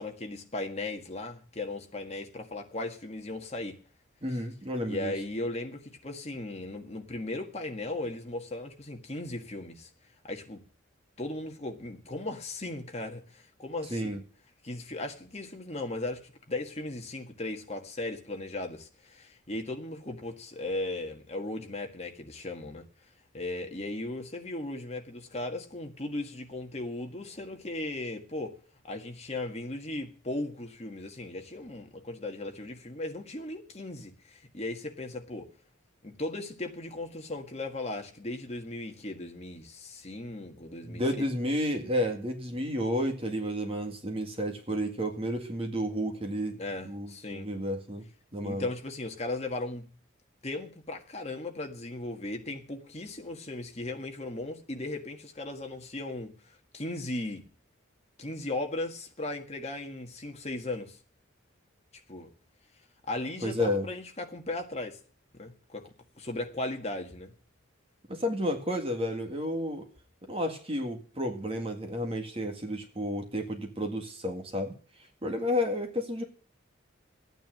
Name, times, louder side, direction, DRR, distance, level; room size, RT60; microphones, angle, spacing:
voice 1, 0.0-3.8 4.3-4.4 4.9-9.9 10.2-10.6 11.2-14.2 14.6-22.9 23.3-28.6 28.8-35.5 36.0-41.2 46.6-47.5 48.4-49.9 50.4-57.4 58.2-61.0 62.1-62.3 63.1-65.0 65.3-65.9 66.2-67.3, left 2 dB, 30° left, 1.7 m, -37 dB
voice 2, 4.2-5.1 13.9-14.2 40.8-46.6 46.8-48.0 48.3-48.7 63.4-63.9 68.1-69.9 70.3-74.8 75.2-76.2, equal, 30° right, 1.9 m, -31 dB
12.0 x 9.3 x 7.7 m
head